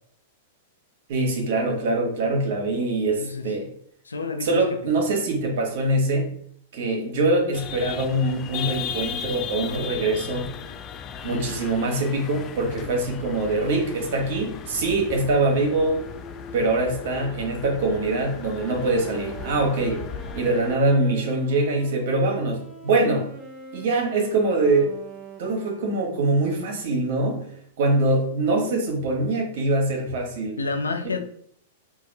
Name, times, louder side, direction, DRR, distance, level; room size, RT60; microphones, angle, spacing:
voice 1, 1.1-3.7 4.4-6.3 6.7-10.5 11.2-16.0 16.5-20.0 20.3-23.3 23.7-24.9 25.4-27.5 27.8-30.6 31.0-31.1, right 2 dB, 60° right, 1 dB, 1.2 m, -23 dB
voice 2, 3.2-3.5 4.0-4.9 30.6-31.2, left 3 dB, 90° left, 5 dB, 0.6 m, -29 dB
sound 1, 7.5-20.8, left 8 dB, 35° left, 0.4 m, -36 dB
Wind instrument woodwind instrument, 18.5-26.4, right 3 dB, 10° right, 0.8 m, -42 dB
4.7 x 2.6 x 2.6 m, 0.64 s
hypercardioid pair, 105°, 0 cm